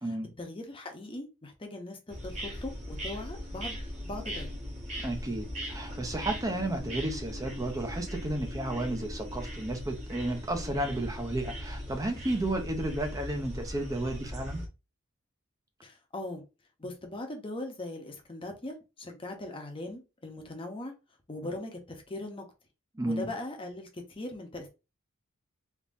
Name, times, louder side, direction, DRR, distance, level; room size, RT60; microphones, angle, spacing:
voice 1, 0.4-3.8 4.0-4.6 15.8-16.4 16.8-20.9 21.3-22.5 23.0-24.7, left 2 dB, 25° left, 0.8 m, -40 dB
sound 1, 2.1-14.7, equal, 30° right, 1.0 m, -39 dB
voice 2, 5.0-14.6 22.9-23.3, right 1 dB, 15° right, 0.6 m, -32 dB
3.6 x 2.8 x 2.6 m
head